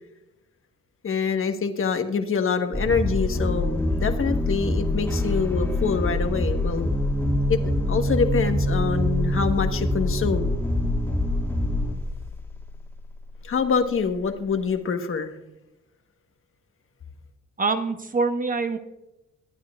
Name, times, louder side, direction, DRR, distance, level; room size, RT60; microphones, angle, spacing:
voice 1, 1.0-6.9 7.5-10.5 13.4-15.3, left 5 dB, 45° left, 7 dB, 1.3 m, -25 dB
sound 1, 2.7-12.9, left 1 dB, 5° left, 1.9 m, -25 dB
voice 2, 17.6-18.8, right 4 dB, 25° right, 8 dB, 1.0 m, -24 dB
22.5 x 9.2 x 2.4 m, 0.92 s
cardioid pair, 90°, 30 cm